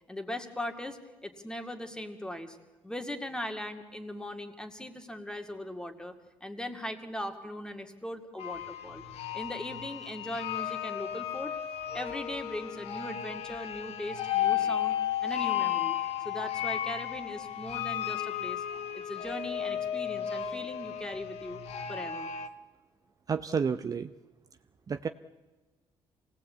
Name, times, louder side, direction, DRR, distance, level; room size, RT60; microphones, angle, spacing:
voice 1, 0.1-2.6 2.8-6.1 6.4-9.0 9.3-11.5 11.9-15.0 15.2-16.0 16.2-18.6 18.9-21.6 21.9-22.3, left 1 dB, 5° left, 6 dB, 2.1 m, -39 dB
sound 1, 8.4-22.5, left 10 dB, 85° left, 1.4 m, -34 dB
voice 2, 23.3-24.1 24.9-25.1, right 6 dB, 35° right, 9 dB, 0.7 m, -30 dB
24.5 x 18.0 x 8.4 m, 1.2 s
cardioid pair, 115°, 10 cm